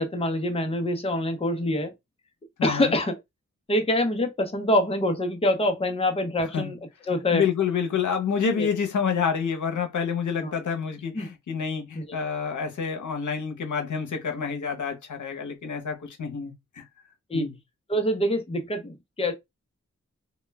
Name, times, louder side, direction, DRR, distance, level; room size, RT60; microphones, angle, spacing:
voice 1, 0.0-1.9 2.6-3.1 3.7-6.8 7.1-7.4 8.6-8.7 10.4-10.5 11.1-11.3 11.9-12.2 17.3-17.5 17.9-19.3, left 1 dB, 20° left, 0.6 m, -25 dB
voice 2, 2.6-2.9 6.5-6.7 7.3-16.8 17.3-17.6, left 6 dB, 90° left, 0.7 m, -28 dB
2.2 x 2.1 x 3.2 m
wide cardioid pair, 85°, 29 cm